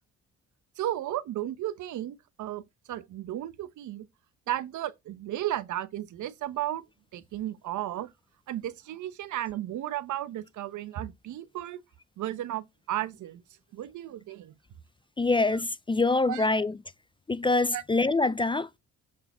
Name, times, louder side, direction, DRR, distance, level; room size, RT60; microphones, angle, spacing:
voice 1, 0.8-2.6 2.9-4.1 4.5-6.8 7.1-8.1 8.5-11.8 12.2-13.4 13.7-14.5 16.3-16.5 17.7-17.8, right 13 dB, 75° right, 1.0 m, -34 dB
voice 2, 15.2-16.8 17.3-18.8, left 3 dB, 15° left, 0.4 m, -25 dB
7.5 x 4.7 x 5.6 m
cardioid pair, 90°, 30 cm